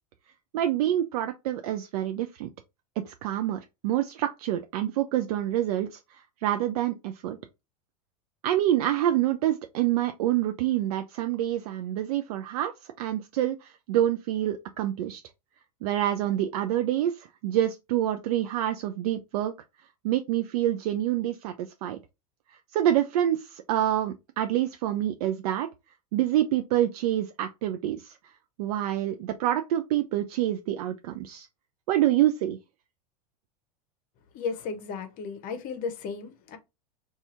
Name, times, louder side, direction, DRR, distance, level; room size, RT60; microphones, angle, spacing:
voice 1, 0.5-2.5 3.1-7.4 8.4-15.2 15.8-19.5 20.0-22.0 22.5-25.7 26.1-28.3 28.6-31.5 31.9-32.6, right 12 dB, 70° right, 0.4 m, -27 dB
voice 2, 34.3-36.6, left 5 dB, 45° left, 0.8 m, -34 dB
2.7 x 2.4 x 4.1 m
hypercardioid pair, 110°, 20 cm